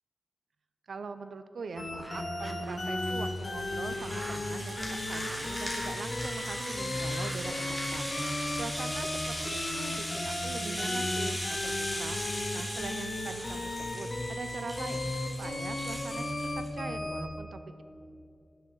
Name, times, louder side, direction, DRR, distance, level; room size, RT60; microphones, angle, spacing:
voice 1, 0.9-16.2 16.5-17.8, right 4 dB, 85° right, 10 dB, 0.4 m, -43 dB
sound 1, 1.6-14.8, right 1 dB, 15° right, 0.9 m, -48 dB
sound 2, 1.8-17.2, left 2 dB, 45° left, 2.0 m, -35 dB
Rattle (instrument), 2.5-16.7, equal, 5° left, 2.7 m, -39 dB
18.5 x 6.4 x 3.9 m, 2.7 s
wide cardioid pair, 70°, 0 cm